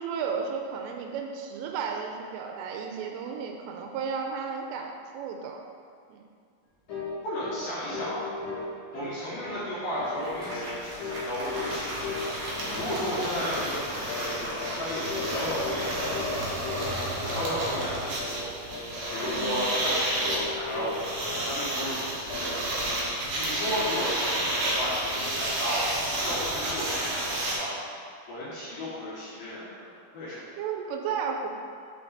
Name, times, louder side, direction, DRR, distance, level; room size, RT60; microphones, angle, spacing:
voice 1, 0.0-5.6 6.1-6.2 12.6-12.9 17.1-17.4 19.3-19.6 30.6-31.5, right 6 dB, 85° right, 3 dB, 3.0 m, -34 dB
sound 1, 6.9-7.1 7.4-7.6 7.9-9.1 9.4-9.7 9.9-10.2 10.5-10.7 11.0-11.7 12.0-12.8 13.0-13.3 13.5-13.8 14.0-14.3 14.6-14.8 15.1-15.3 15.6-15.8 16.1-16.3 16.6-16.9 17.1-17.3 17.7-17.9 18.2-18.4 18.7-18.9 19.2-19.9 20.2-21.0 21.2-22.0 22.3-23.0, left 5 dB, 85° left, 1.1 m, -37 dB
voice 2, 7.2-8.3 8.9-10.8 11.0-12.1 12.8-16.4 17.2-18.5 19.1-22.7 23.3-26.0 26.2-27.7 28.3-29.7 30.1-30.4, equal, 55° left, -11 dB, 3.3 m, -33 dB
Applause, 9.7-17.1, equal, 50° right, 2.0 m, -40 dB
sound 2, 10.3-10.4 10.6-27.5, right 1 dB, 70° right, 2.1 m, -31 dB
7.1 x 5.8 x 3.9 m, 2.2 s
omnidirectional pair, 5.7 m